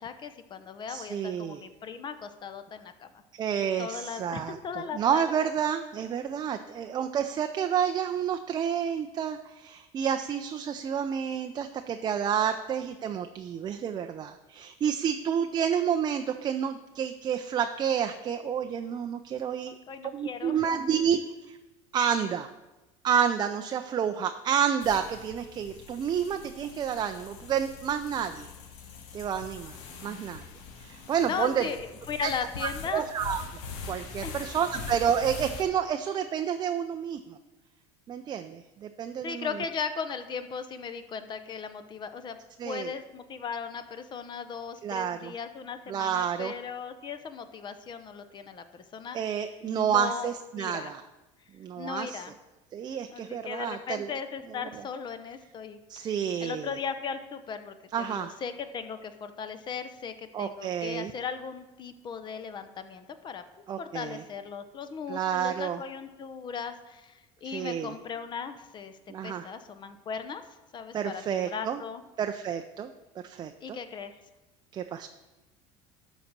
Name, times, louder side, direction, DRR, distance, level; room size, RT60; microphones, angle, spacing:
voice 1, 0.0-3.2 3.8-5.5 19.6-20.7 30.4-30.5 31.2-33.0 34.2-34.6 39.2-42.4 42.6-49.2 49.6-50.3 50.6-50.9 51.8-52.3 53.1-56.1 56.4-57.7 58.1-63.4 63.8-68.9 69.2-70.4 70.7-72.0 73.6-74.1, left 6 dB, 30° left, 9 dB, 0.7 m, -37 dB
voice 2, 0.9-1.6 3.3-19.7 20.1-21.2 21.5-21.6 21.9-22.5 23.0-28.5 29.1-30.4 30.8-31.6 32.2-32.3 32.6-33.4 33.9-37.4 38.1-39.5 42.6-42.9 44.8-45.3 45.9-46.5 49.1-51.0 51.6-52.2 52.7-54.1 55.9-56.7 57.9-58.3 60.3-61.1 63.7-64.2 65.1-65.8 67.4-67.9 69.1-69.5 70.9-71.8 72.2-72.9 73.2-73.8 74.7-75.1, right 8 dB, 30° right, 7 dB, 0.4 m, -29 dB
sound 1, 24.8-35.6, left 5 dB, 80° left, 1.3 m, -43 dB
11.5 x 4.1 x 6.0 m, 1.1 s
supercardioid pair, 125°, 15 cm